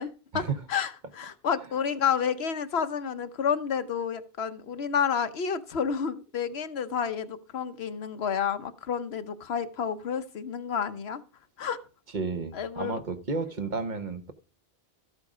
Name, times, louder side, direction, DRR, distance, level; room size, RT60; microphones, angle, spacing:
voice 1, 0.0-0.4 0.7-11.2 11.6-11.8 12.5-13.0, left 7 dB, 85° left, 10 dB, 1.2 m, -30 dB
voice 2, 12.1-14.3, right 4 dB, 50° right, 8 dB, 1.1 m, -32 dB
13.0 x 8.1 x 4.9 m, 0.35 s
omnidirectional pair, 1.0 m